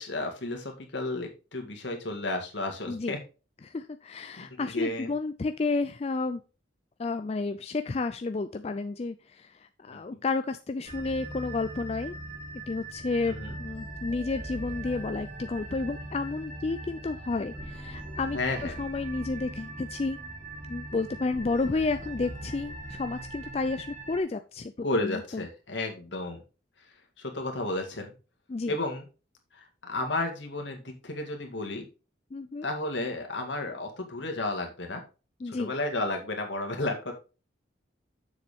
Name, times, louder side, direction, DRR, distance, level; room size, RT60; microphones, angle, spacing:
voice 1, 0.0-3.2 4.4-5.1 9.9-10.2 13.2-13.5 18.3-18.8 24.8-26.4 27.2-28.1 28.7-29.1 29.5-31.9 32.6-35.0 35.4-37.1, left 2 dB, 70° left, 3 dB, 2.0 m, -32 dB
voice 2, 3.6-6.4 7.0-12.2 12.7-20.2 20.7-24.7 25.0-25.4 28.5-28.7 32.3-32.7 35.4-35.7, left 3 dB, 30° left, 9 dB, 0.3 m, -31 dB
sound 1, 10.8-24.2, right 1 dB, 45° right, 3.3 m, -40 dB
7.2 x 6.7 x 3.5 m, 0.32 s
head